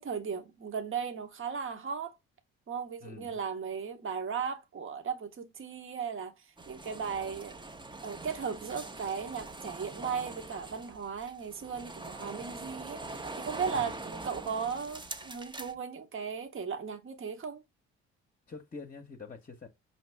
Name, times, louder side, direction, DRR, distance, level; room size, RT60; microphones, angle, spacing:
voice 1, 0.0-2.2 2.7-7.6 8.0-17.6, right 6 dB, 40° right, 1.0 m, -36 dB
voice 2, 3.0-3.4 13.7-14.0 18.5-19.7, left 4 dB, 25° left, 0.9 m, -46 dB
sound 1, 6.6-15.7, right 2 dB, 15° right, 0.6 m, -43 dB
5.2 x 2.9 x 3.4 m
hypercardioid pair, 50°, 32 cm